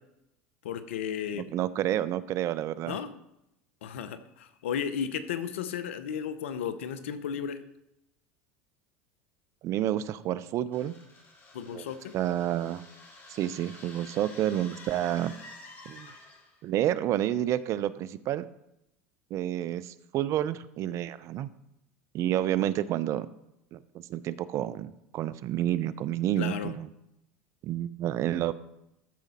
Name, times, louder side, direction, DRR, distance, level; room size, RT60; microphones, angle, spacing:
voice 1, 0.6-1.5 2.9-3.1 3.8-7.6 11.5-12.1 26.4-26.8, left 8 dB, 80° left, 12 dB, 0.7 m, -34 dB
voice 2, 1.3-3.0 9.6-10.9 11.7-11.9 12.1-12.8 13.3-15.3 15.9-16.1 16.6-18.5 19.3-21.5 22.1-23.3 23.7-26.9 27.6-28.5, right 12 dB, 50° right, 16 dB, 0.5 m, -29 dB
sound 1, 10.7-16.6, left 2 dB, 35° left, 2.7 m, -50 dB
13.5 x 5.1 x 4.2 m, 0.85 s
hypercardioid pair, 80°, 7 cm